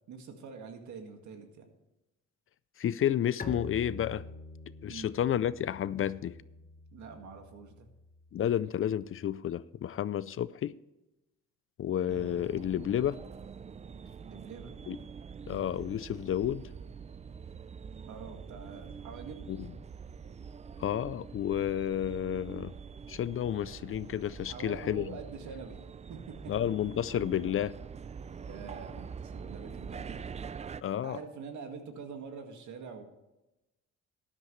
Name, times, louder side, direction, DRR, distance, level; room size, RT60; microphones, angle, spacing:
voice 1, 0.0-1.7 4.9-5.1 6.9-7.9 14.2-14.7 18.1-19.4 24.5-25.8 26.1-26.5 28.5-30.3 31.0-33.0, right 5 dB, 70° right, 1.9 m, -45 dB
voice 2, 2.8-4.2 4.8-6.4 8.3-10.7 11.8-13.2 14.9-15.0 15.5-16.7 19.5-19.7 20.8-22.7 23.1-25.2 26.5-27.8 30.8-31.2, left 10 dB, 45° left, 0.4 m, -31 dB
Bowed string instrument, 3.4-9.0, left 3 dB, 30° left, 1.3 m, -47 dB
sound 1, 12.1-30.8, right 6 dB, 25° right, 0.4 m, -45 dB
13.0 x 11.0 x 3.2 m
cardioid pair, 90°, 30 cm